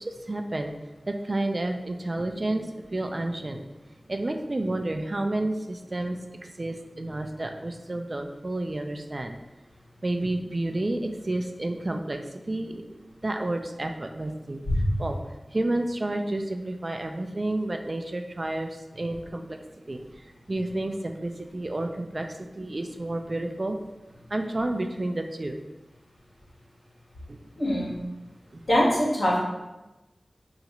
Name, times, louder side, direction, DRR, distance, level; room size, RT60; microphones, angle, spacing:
voice 1, 0.0-0.7 1.1-3.6 4.1-9.4 10.0-12.2 12.5-12.8 13.2-14.6 15.0-15.2 15.5-18.7 19.0-19.6 19.9-20.0 20.5-22.3 22.6-23.8 24.3-25.6 27.3-27.4 28.5-28.6, right 1 dB, 45° right, 5 dB, 0.3 m, -30 dB
voice 2, 27.6-27.9 28.7-29.4, equal, 80° left, -7 dB, 1.3 m, -22 dB
2.9 x 2.4 x 4.1 m, 1.1 s
wide cardioid pair, 50°, 0 cm